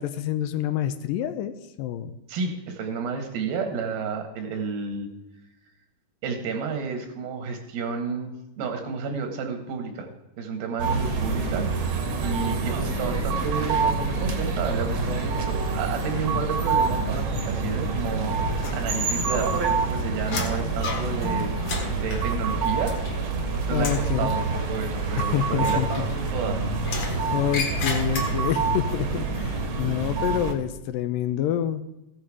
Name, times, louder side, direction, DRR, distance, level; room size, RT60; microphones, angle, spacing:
voice 1, 0.0-2.1 12.4-12.7 23.7-24.3 25.2-25.9 27.3-31.8, left 11 dB, 80° left, 11 dB, 2.2 m, -27 dB
voice 2, 2.3-5.1 6.2-10.1 10.4-11.9 12.2-21.5 21.9-22.9 23.2-23.3 23.7-26.6, right 5 dB, 85° right, 5 dB, 3.4 m, -31 dB
sound 1, 10.8-30.5, right 4 dB, 55° right, 1.6 m, -26 dB
sound 2, 18.6-19.4 19.7-23.4 23.7-24.1 25.6-26.4 26.8-28.6, left 3 dB, 55° left, 2.5 m, -34 dB
15.0 x 7.8 x 4.9 m, 0.93 s
omnidirectional pair, 4.1 m